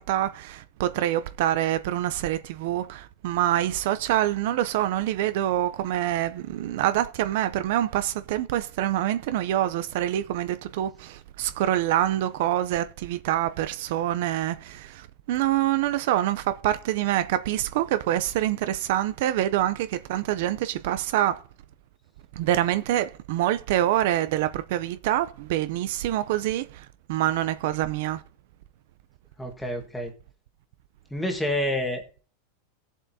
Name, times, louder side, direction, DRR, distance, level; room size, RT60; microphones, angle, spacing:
voice 1, 0.0-21.4 22.4-28.2, right 13 dB, 50° right, 0.5 m, -26 dB
voice 2, 29.4-30.1 31.1-32.2, left 1 dB, 5° left, 1.4 m, -28 dB
17.5 x 7.3 x 2.7 m
supercardioid pair, 175°, 0 cm